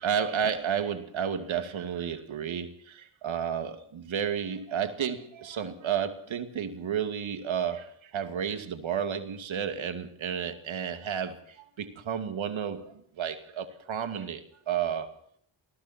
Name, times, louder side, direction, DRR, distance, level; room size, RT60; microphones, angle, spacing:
voice 1, 0.0-15.1, right 8 dB, 70° right, 8 dB, 2.7 m, -32 dB
28.5 x 20.5 x 4.6 m, 0.63 s
cardioid pair, 90°, 48 cm